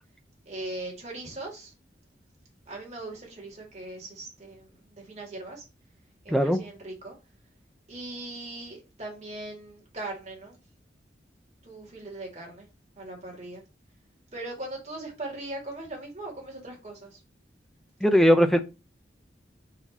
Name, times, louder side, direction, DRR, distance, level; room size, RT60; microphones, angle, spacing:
voice 1, 0.5-1.7 2.7-5.6 6.2-7.1 7.9-10.6 11.6-12.7 13.0-13.6 14.3-17.2, right 2 dB, 40° right, 2.3 m, -39 dB
voice 2, 6.3-6.6 18.0-18.6, equal, ahead, 0.6 m, -19 dB
8.2 x 2.8 x 4.1 m
head